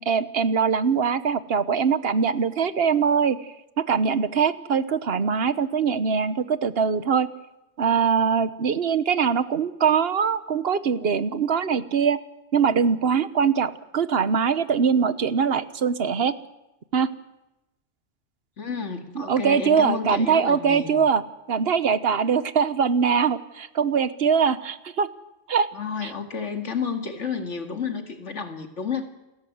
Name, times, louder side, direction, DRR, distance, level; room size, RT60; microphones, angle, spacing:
voice 1, 0.0-3.4 3.8-7.3 7.8-12.2 12.5-16.3 16.9-17.1 19.1-21.2 21.5-25.1 25.5-25.7 26.0-26.1, right 6 dB, 55° right, 14 dB, 1.2 m, -22 dB
voice 2, 18.6-21.0 25.7-29.1, left 6 dB, 70° left, 6 dB, 2.5 m, -31 dB
29.0 x 14.0 x 9.5 m, 0.97 s
omnidirectional pair, 1.3 m